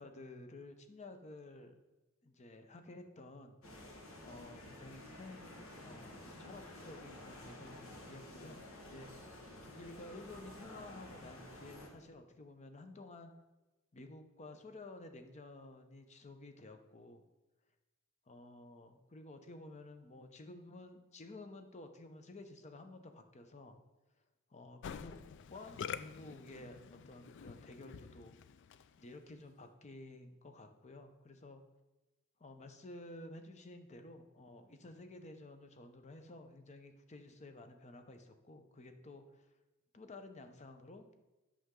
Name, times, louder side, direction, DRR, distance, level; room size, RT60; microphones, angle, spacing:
voice 1, 0.0-1.8 2.2-3.6 4.2-5.5 5.8-9.3 9.6-13.3 13.9-17.2 18.3-23.8 24.5-25.1 25.5-26.8 27.0-28.4 29.0-31.6 32.4-39.5 39.9-41.1, left 2 dB, 35° left, 7 dB, 0.7 m, -52 dB
sound 1, 3.6-11.9, left 1 dB, 85° left, 1.5 m, -52 dB
Musical instrument, 24.8-29.1, left 7 dB, 60° left, 0.3 m, -47 dB
8.4 x 6.4 x 3.7 m, 1.1 s
head